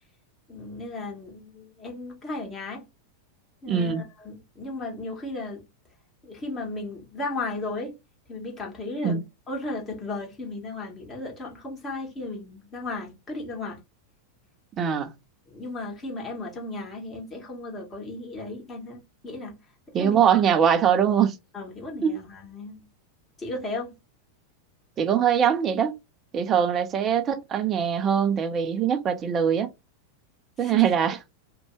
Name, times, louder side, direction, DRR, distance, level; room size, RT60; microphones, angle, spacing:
voice 1, 0.5-2.8 3.6-5.6 6.2-7.9 8.3-13.8 15.5-19.6 20.0-20.2 21.5-22.8 23.4-23.9 30.6-30.8, left 2 dB, 20° left, 1.2 m, -35 dB
voice 2, 3.7-4.0 9.0-9.2 14.7-15.1 19.9-21.4 22.0-22.2 25.0-25.9 26.3-29.7 30.6-31.2, right 8 dB, 25° right, 0.5 m, -22 dB
2.6 x 2.2 x 3.1 m
figure-of-eight pair, 90°, 0 cm